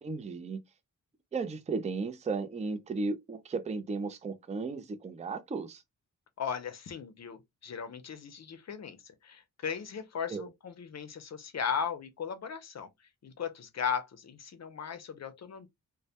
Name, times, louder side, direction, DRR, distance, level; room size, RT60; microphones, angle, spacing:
voice 1, 0.0-0.6 1.3-5.8 10.3-10.5, right 4 dB, 20° right, 0.3 m, -35 dB
voice 2, 6.4-9.0 9.2-12.9 13.2-15.7, left 7 dB, 50° left, 0.5 m, -37 dB
2.1 x 2.1 x 2.7 m
wide cardioid pair, 110°, 34 cm